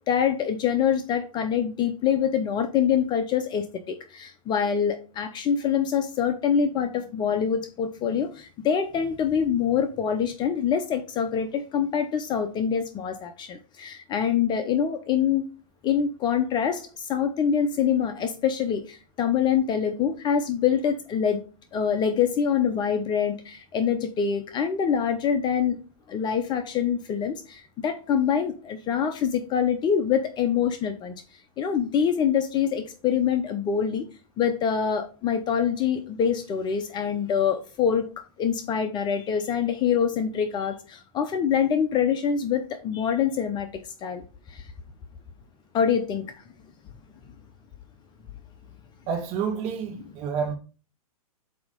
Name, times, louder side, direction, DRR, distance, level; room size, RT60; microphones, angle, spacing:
voice 1, 0.1-15.4 15.8-21.4 21.7-25.8 26.1-31.1 31.6-34.1 34.4-38.1 38.4-43.7 44.0-44.6 45.7-46.3 49.9-50.1, left 7 dB, 25° left, 0.7 m, -25 dB
voice 2, 49.1-50.6, right 6 dB, 35° right, 1.5 m, -29 dB
7.8 x 3.0 x 5.3 m
hypercardioid pair, 120°, 19 cm